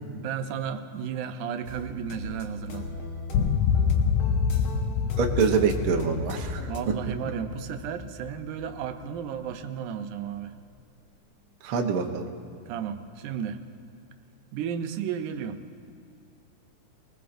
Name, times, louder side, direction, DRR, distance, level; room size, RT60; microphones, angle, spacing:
voice 1, 0.1-2.9 6.6-10.5 12.5-13.6 14.5-15.6, right 8 dB, 90° right, 7 dB, 2.2 m, -33 dB
sound 1, 1.7-6.8, left 1 dB, 55° left, 1.6 m, -39 dB
sound 2, 3.3-8.7, left 6 dB, 75° left, 1.7 m, -27 dB
voice 2, 5.2-6.6 11.6-12.3, right 5 dB, 70° right, 3 dB, 1.3 m, -25 dB
22.5 x 19.5 x 2.6 m, 2.4 s
omnidirectional pair, 3.5 m